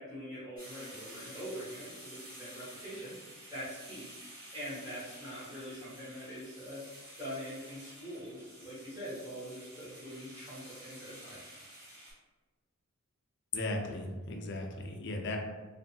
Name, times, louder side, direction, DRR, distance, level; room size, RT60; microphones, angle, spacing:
voice 1, 0.0-3.1 3.5-4.1 4.5-6.8 7.2-11.4, equal, 15° right, -11 dB, 1.2 m, -43 dB
sound 1, 0.6-12.1, equal, 40° right, 1.4 m, -51 dB
voice 2, 13.5-15.4, left 2 dB, 55° left, 2 dB, 0.4 m, -36 dB
2.6 x 2.5 x 2.7 m, 1.3 s
head